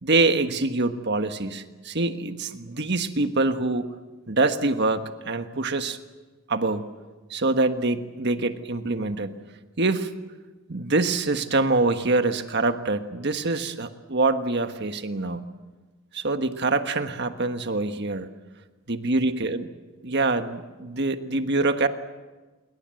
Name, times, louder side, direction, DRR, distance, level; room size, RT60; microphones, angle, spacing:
voice 1, 0.0-3.9 4.3-6.0 6.5-6.9 7.3-9.3 9.8-10.1 10.7-15.4 16.1-18.3 18.9-19.7 20.0-21.9, right 3 dB, 50° right, 8 dB, 1.4 m, -25 dB
27.5 x 23.0 x 7.7 m, 1.3 s
head